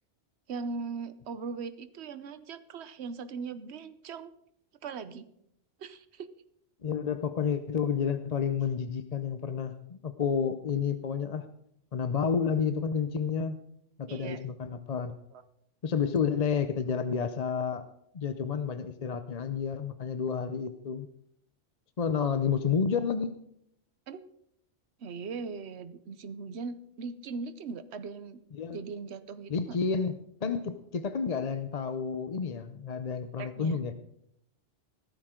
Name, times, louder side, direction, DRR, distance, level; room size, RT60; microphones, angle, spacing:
voice 1, 0.5-4.3 4.8-5.2 5.8-6.3 14.1-14.5 15.3-15.4 24.1-24.2 25.0-28.4 28.7-29.8 33.4-33.8, right 5 dB, 65° right, 12 dB, 1.1 m, -39 dB
voice 2, 6.8-11.5 11.9-13.6 14.0-15.1 15.8-17.8 18.1-21.1 22.0-23.3 28.5-28.8 29.5-33.9, left 6 dB, 40° left, 10 dB, 0.6 m, -30 dB
17.0 x 14.0 x 3.8 m, 0.72 s
omnidirectional pair, 1.2 m